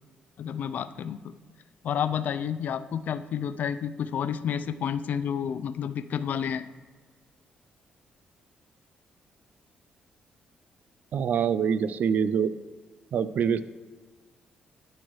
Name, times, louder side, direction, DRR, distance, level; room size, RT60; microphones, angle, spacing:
voice 1, 0.4-1.3 1.8-6.6, left 8 dB, 65° left, 12 dB, 0.4 m, -30 dB
voice 2, 11.1-12.5 13.1-13.6, right 7 dB, 65° right, 15 dB, 0.3 m, -25 dB
12.5 x 4.5 x 3.1 m, 1.4 s
cardioid pair, 90°, 3 cm